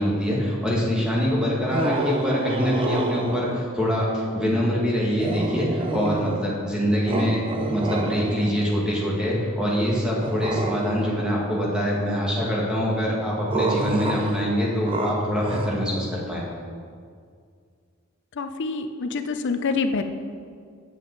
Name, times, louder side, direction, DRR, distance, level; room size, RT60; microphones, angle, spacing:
voice 1, 0.0-7.4 7.7-16.4, equal, 5° right, -5 dB, 1.6 m, -24 dB
sound 1, 1.7-3.7 5.2-6.6 7.1-8.7 10.2-11.3 13.5-15.7, right 2 dB, 25° right, 0.5 m, -28 dB
voice 2, 18.4-20.0, left 4 dB, 55° left, 8 dB, 0.5 m, -26 dB
8.7 x 7.5 x 4.0 m, 2.1 s
head